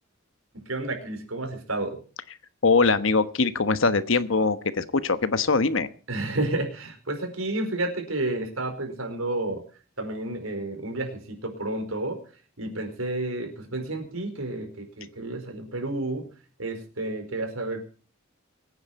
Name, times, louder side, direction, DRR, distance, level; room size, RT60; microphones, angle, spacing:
voice 1, 0.5-2.0 6.1-9.6 10.0-12.2 12.6-16.3 16.6-17.8, right 2 dB, 85° right, 5 dB, 4.9 m, -31 dB
voice 2, 2.6-5.9, left 4 dB, 65° left, 12 dB, 1.2 m, -22 dB
24.0 x 9.7 x 4.2 m, 0.38 s
head